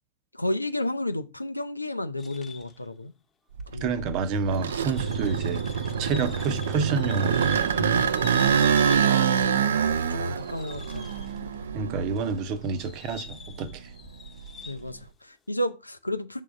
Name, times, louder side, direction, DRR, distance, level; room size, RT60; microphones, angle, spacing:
voice 1, 0.3-3.1 3.7-3.9 6.1-6.2 7.7-8.5 8.9-9.2 9.9-11.1 14.7-16.4, left 1 dB, 85° left, 0.5 m, -32 dB
sound 1, 2.2-2.9 3.6-3.7 4.4-9.7 10.0-11.6 12.1-14.9, left 6 dB, 15° left, 1.1 m, -46 dB
sound 2, 3.6-12.6 13.1-14.9, right 7 dB, 65° right, 0.5 m, -26 dB
voice 2, 3.8-7.5 11.7-13.9, right 5 dB, 40° right, 0.8 m, -29 dB
6.6 x 3.7 x 5.1 m
figure-of-eight pair, 90°, 0 cm